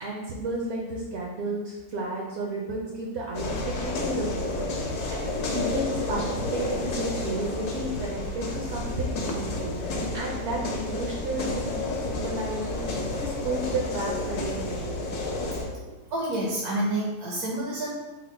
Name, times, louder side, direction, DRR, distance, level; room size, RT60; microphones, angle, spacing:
voice 1, 0.0-4.7 5.1-15.0, right 2 dB, 65° right, -3 dB, 0.7 m, -32 dB
sound 1, 3.3-15.6, left 2 dB, 80° left, 1.2 m, -31 dB
voice 2, 16.1-17.9, right 1 dB, 80° right, -4 dB, 1.2 m, -28 dB
3.7 x 2.0 x 4.3 m, 1.2 s
omnidirectional pair, 1.6 m